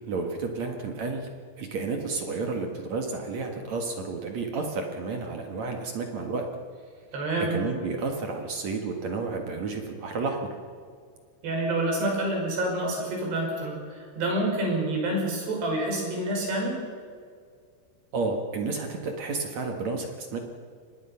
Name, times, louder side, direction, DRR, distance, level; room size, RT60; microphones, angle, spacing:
voice 1, 0.1-1.3 1.6-6.5 7.5-10.4 18.1-20.4, right 4 dB, 55° right, 3 dB, 2.4 m, -31 dB
voice 2, 7.1-7.5 11.4-16.8, right 1 dB, 75° right, -1 dB, 7.7 m, -28 dB
24.0 x 20.5 x 5.7 m, 2.1 s
omnidirectional pair, 4.7 m